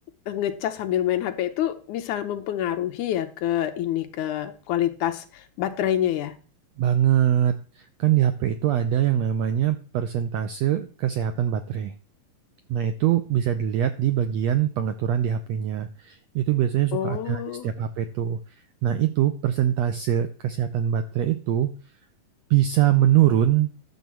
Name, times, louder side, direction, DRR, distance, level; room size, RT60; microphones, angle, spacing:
voice 1, 0.3-6.4 16.9-17.7, left 11 dB, 75° left, 8 dB, 2.2 m, -27 dB
voice 2, 6.8-11.9 12.7-18.4 18.8-21.7 22.5-23.7, right 11 dB, 90° right, 9 dB, 1.5 m, -23 dB
12.0 x 4.1 x 7.5 m, 0.38 s
omnidirectional pair, 3.8 m